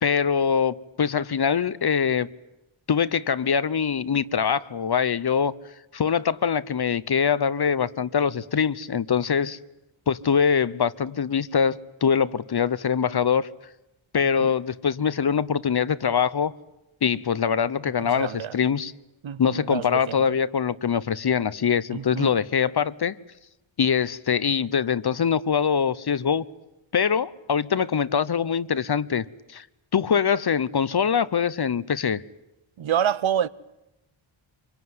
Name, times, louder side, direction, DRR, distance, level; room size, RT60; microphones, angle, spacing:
voice 1, 0.0-2.3 2.9-5.5 5.9-9.6 10.1-13.5 14.1-16.5 17.0-18.9 19.4-23.1 23.8-26.4 26.9-29.6 29.9-32.2, left 7 dB, 50° left, 0.9 m, -23 dB
voice 2, 18.0-18.6 19.2-20.4 21.9-22.3 32.8-33.5, right 9 dB, 65° right, 0.9 m, -28 dB
25.5 x 23.5 x 9.6 m
wide cardioid pair, 100°, 50 cm